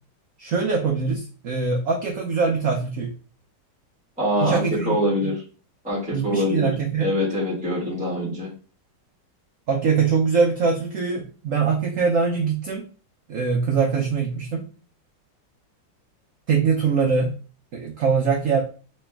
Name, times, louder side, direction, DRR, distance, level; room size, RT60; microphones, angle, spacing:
voice 1, 0.4-3.1 4.4-5.0 6.1-7.1 9.7-12.9 13.3-14.6 16.5-17.3 17.7-18.6, right 5 dB, 90° right, 2 dB, 0.7 m, -22 dB
voice 2, 4.2-5.4 5.8-6.7 7.0-8.5, left 1 dB, 5° right, -6 dB, 1.1 m, -24 dB
3.2 x 3.0 x 3.4 m, 0.38 s
omnidirectional pair, 2.1 m